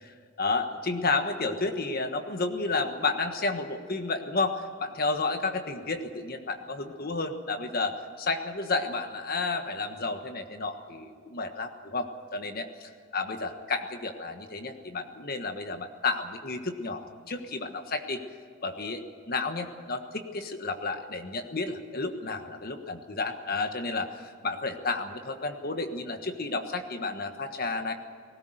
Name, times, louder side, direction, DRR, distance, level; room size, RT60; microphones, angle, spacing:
voice 1, 0.1-18.2 18.6-27.9, left 3 dB, 50° left, 6 dB, 1.4 m, -31 dB
19.5 x 18.0 x 8.0 m, 2.1 s
head